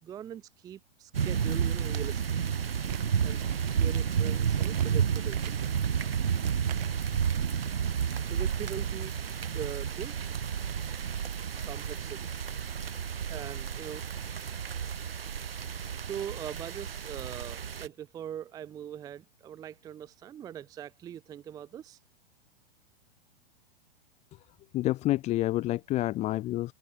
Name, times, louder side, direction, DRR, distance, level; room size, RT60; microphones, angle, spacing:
voice 1, 0.0-2.4 2.9-3.4 3.7-5.6 7.8-9.1 9.5-10.2 11.6-12.3 13.3-14.0 15.6-22.0, right 10 dB, 10° right, 0.6 m, -42 dB
sound 1, 1.1-17.9, right 7 dB, 70° right, 1.0 m, -31 dB
sound 2, 2.7-7.3, right 19 dB, 40° right, 3.9 m, -43 dB
voice 2, 24.7-26.7, left 16 dB, 20° left, 1.2 m, -28 dB
figure-of-eight pair, 110°, 31 cm